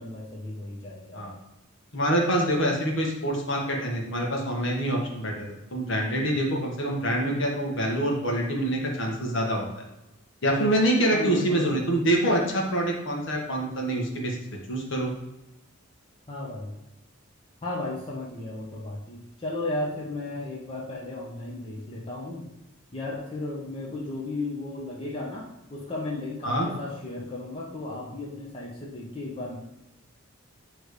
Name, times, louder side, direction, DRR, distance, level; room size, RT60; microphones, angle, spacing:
voice 1, 0.0-1.4 11.1-11.8 16.3-16.7 17.6-22.4 22.9-29.6, left 2 dB, 25° left, -4 dB, 1.0 m, -34 dB
voice 2, 1.9-9.7 10.4-14.4 14.7-15.1 26.4-26.7, right 1 dB, 55° left, -1 dB, 1.4 m, -26 dB
8.9 x 3.2 x 4.9 m, 0.94 s
head